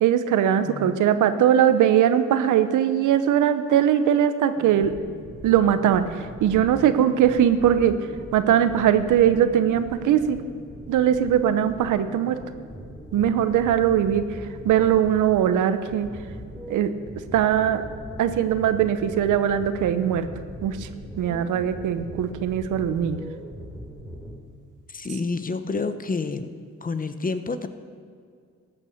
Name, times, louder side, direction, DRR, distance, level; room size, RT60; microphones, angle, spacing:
voice 1, 0.0-4.9 5.4-7.9 8.3-10.4 10.9-12.4 13.1-16.1 16.7-16.9 17.3-17.8 18.2-20.3 20.6-20.9 21.2-23.2, right 9 dB, 80° right, 11 dB, 0.9 m, -20 dB
voice 2, 0.7-1.0 24.9-26.5 26.8-27.7, left 4 dB, 30° left, 10 dB, 0.9 m, -29 dB
sound 1, 4.5-24.4, equal, ahead, 3.1 m, -40 dB
14.5 x 8.7 x 6.6 m, 2.2 s
cardioid pair, 75°, 30 cm